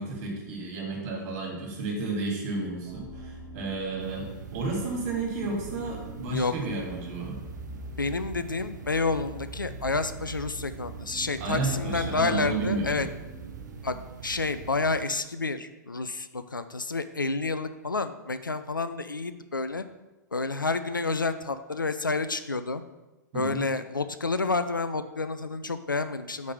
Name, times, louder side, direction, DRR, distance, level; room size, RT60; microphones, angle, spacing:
voice 1, 0.0-7.4 11.4-13.0 23.3-23.7, right 3 dB, 40° right, -1 dB, 2.5 m, -32 dB
sound 1, 2.9-14.7, right 2 dB, 5° right, 1.2 m, -45 dB
sound 2, 4.0-15.0, right 8 dB, 65° right, 0.6 m, -44 dB
voice 2, 8.0-13.1 13.8-14.0 14.2-19.8 20.3-22.8 23.3-26.5, left 3 dB, 90° left, 11 dB, 0.4 m, -29 dB
5.3 x 4.9 x 6.1 m, 1.1 s
figure-of-eight pair, 105°, 10 cm